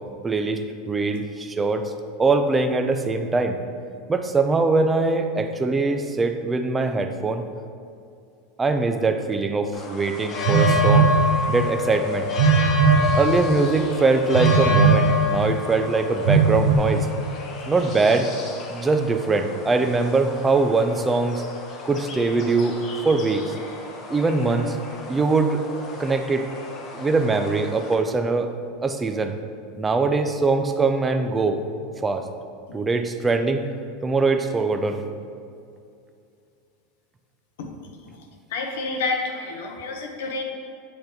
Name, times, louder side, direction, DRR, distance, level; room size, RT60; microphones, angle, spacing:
voice 1, 0.2-1.9 2.2-3.6 4.1-7.4 8.6-11.1 11.5-12.3 13.2-17.1 17.7-18.3 18.7-21.4 21.8-22.8 23.0-23.5 24.1-25.6 26.0-26.5 26.9-28.5 28.8-29.4 29.8-31.6 32.0-32.2 32.7-33.6 34.0-35.0, right 3 dB, 10° right, 6 dB, 0.3 m, -22 dB
sound 1, 9.7-27.9, left 3 dB, 30° left, 0.7 m, -30 dB
Telephone, 10.5-11.2 12.4-13.1 14.3-15.1 16.3-16.8, right 6 dB, 75° right, 0.8 m, -17 dB
voice 2, 38.5-40.4, left 3 dB, 75° left, 3 dB, 0.9 m, -29 dB
7.9 x 2.9 x 5.1 m, 2.4 s
supercardioid pair, 165°, 0 cm